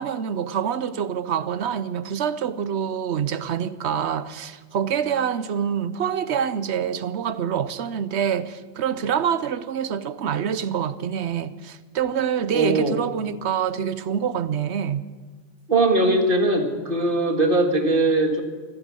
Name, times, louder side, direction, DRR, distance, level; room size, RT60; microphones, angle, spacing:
voice 1, 0.0-15.0, right 8 dB, 85° right, 1.1 m, -26 dB
voice 2, 12.5-13.0 15.7-18.4, right 2 dB, 55° right, 2.0 m, -20 dB
15.0 x 15.0 x 6.3 m
omnidirectional pair, 1.1 m